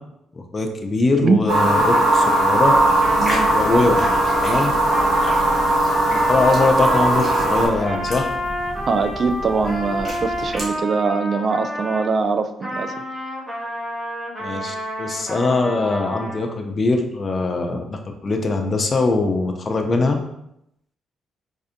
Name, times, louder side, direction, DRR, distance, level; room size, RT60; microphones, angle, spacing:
voice 1, 0.3-2.7 3.5-4.1 4.4-4.7 6.1-8.2 14.4-20.2, left 3 dB, 35° left, 3 dB, 0.4 m, -22 dB
sound 1, 1.5-7.7, right 1 dB, 85° right, 1.0 m, -18 dB
Trumpet, 1.9-12.1 12.6-16.4, equal, 15° right, 1.1 m, -30 dB
sound 2, 2.7-10.7, equal, 30° right, 1.5 m, -34 dB
voice 2, 3.2-3.5 8.9-12.9, right 4 dB, 45° right, 9 dB, 0.3 m, -22 dB
4.1 x 2.6 x 2.6 m, 0.79 s
cardioid pair, 90°, 0 cm